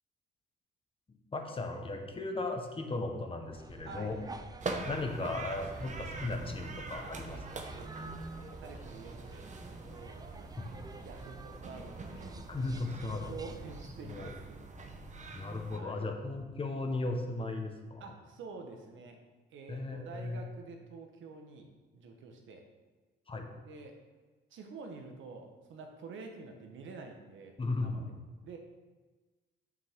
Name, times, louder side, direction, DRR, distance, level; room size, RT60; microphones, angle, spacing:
voice 1, 1.1-4.2 4.8-7.4 10.6-10.7 12.5-13.3 14.0-14.3 15.3-18.0 19.7-20.4 23.3-23.5 27.6-28.1, left 2 dB, 25° left, 4 dB, 1.2 m, -36 dB
sound 1, 3.5-13.9, right 3 dB, 20° right, 0.5 m, -49 dB
voice 2, 3.8-4.2 7.0-7.2 7.7-10.2 11.0-12.3 13.2-14.7 15.7-16.1 18.0-19.2 19.5-22.7 23.6-24.0 24.5-28.1 28.4-28.6, right 4 dB, 75° right, 4 dB, 1.2 m, -48 dB
sound 2, 4.6-15.8, right 3 dB, 40° right, 1.0 m, -44 dB
7.4 x 6.2 x 3.7 m, 1.3 s
cardioid pair, 90°, 20 cm